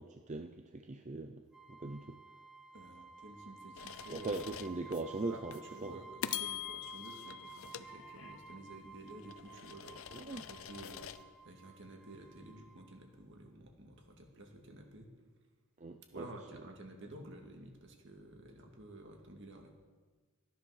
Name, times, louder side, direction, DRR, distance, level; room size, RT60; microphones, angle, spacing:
voice 1, 0.0-1.4 1.7-2.2 4.1-6.0 10.1-10.5 15.8-16.3, right 2 dB, 35° right, 6 dB, 0.5 m, -40 dB
sound 1, 1.5-13.0, right 4 dB, 5° right, 1.2 m, -54 dB
voice 2, 2.7-4.4 5.3-15.1 16.1-19.7, right 1 dB, 60° right, 2 dB, 2.2 m, -52 dB
sound 2, 3.8-5.0 5.5-5.7 6.2-8.6 9.1-11.2, left 10 dB, 70° left, 0.6 m, -44 dB
14.0 x 10.0 x 6.5 m, 1.4 s
head